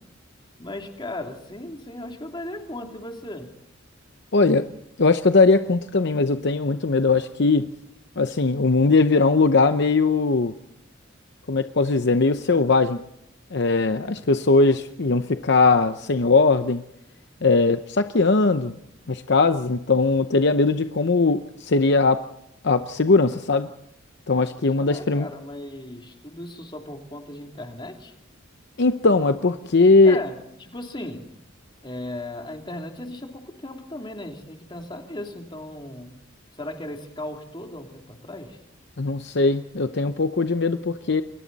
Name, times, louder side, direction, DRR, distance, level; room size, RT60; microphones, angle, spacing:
voice 1, 0.6-3.5 24.7-28.1 30.0-31.3 31.8-36.2 36.5-38.6, left 1 dB, 25° left, 2 dB, 3.0 m, -36 dB
voice 2, 4.3-4.7 5.0-7.7 8.2-10.5 11.5-13.0 13.5-16.8 17.4-18.7 19.1-22.2 22.6-23.7 24.3-25.3 28.8-30.2 39.0-41.2, left 3 dB, 60° left, 9 dB, 0.8 m, -20 dB
29.5 x 22.5 x 4.1 m, 0.77 s
head